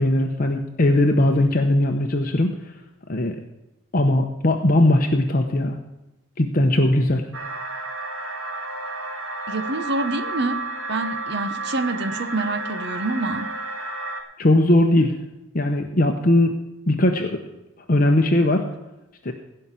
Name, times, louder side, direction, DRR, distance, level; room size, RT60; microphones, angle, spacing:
voice 1, 0.0-2.6 3.1-3.4 3.9-5.8 6.4-7.2 14.4-15.2 15.5-16.5 16.9-17.4 17.9-18.7 19.2-19.3, left 1 dB, 40° left, 0.8 m, -19 dB
sound 1, 7.3-14.2, right 2 dB, 75° right, 1.7 m, -31 dB
voice 2, 9.5-13.5, right 2 dB, 55° right, 1.0 m, -27 dB
16.5 x 5.6 x 7.5 m
head